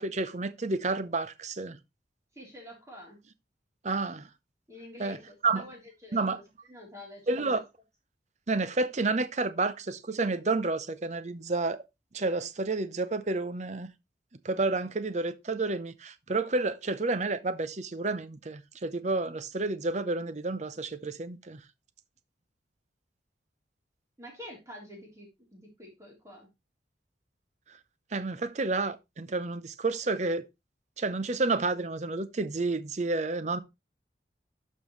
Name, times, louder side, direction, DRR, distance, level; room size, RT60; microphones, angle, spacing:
voice 1, 0.0-1.8 3.8-4.3 5.0-5.2 5.4-5.6 6.1-6.4 7.3-7.6 8.5-11.8 12.1-13.9 14.4-21.6 28.1-30.4 31.0-33.6, right 3 dB, 40° right, 0.7 m, -30 dB
voice 2, 2.3-3.2 4.7-7.6 24.2-26.5, left 1 dB, 15° right, 3.4 m, -48 dB
12.0 x 5.4 x 3.1 m
head